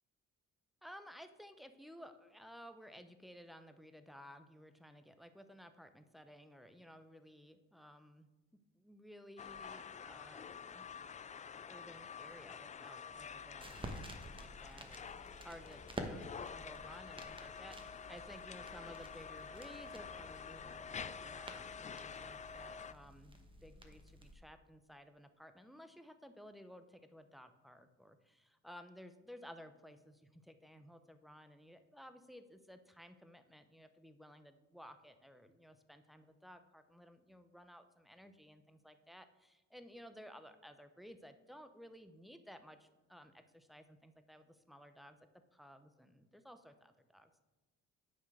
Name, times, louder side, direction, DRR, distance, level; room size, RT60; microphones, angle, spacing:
voice 1, 0.8-8.3 8.8-10.9 11.6-45.2 45.5-47.4, equal, ahead, 9 dB, 0.7 m, -56 dB
sound 1, 9.4-22.9, left 6 dB, 25° left, 0.3 m, -49 dB
sound 2, 13.1-24.4, right 1 dB, 15° right, 1.2 m, -51 dB
9.3 x 4.5 x 6.2 m, 1.2 s
cardioid pair, 90°, 30 cm